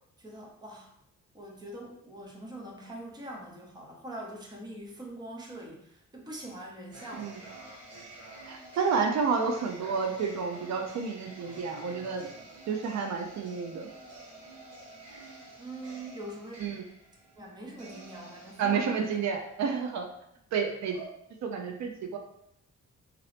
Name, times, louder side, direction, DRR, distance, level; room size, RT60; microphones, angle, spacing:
voice 1, 0.2-0.9 1.3-7.3 15.6-16.7 17.4-19.2, right 1 dB, 15° right, -2 dB, 0.7 m, -43 dB
sound 1, 6.9-20.4 20.9-21.0, right 2 dB, 55° right, 1.3 m, -49 dB
voice 2, 8.5-12.3 12.7-13.9 16.6-16.8 18.6-20.1 20.5-21.0 21.4-22.2, right 5 dB, 70° right, 4 dB, 0.5 m, -30 dB
3.7 x 2.9 x 3.2 m, 0.75 s
wide cardioid pair, 180°, 29 cm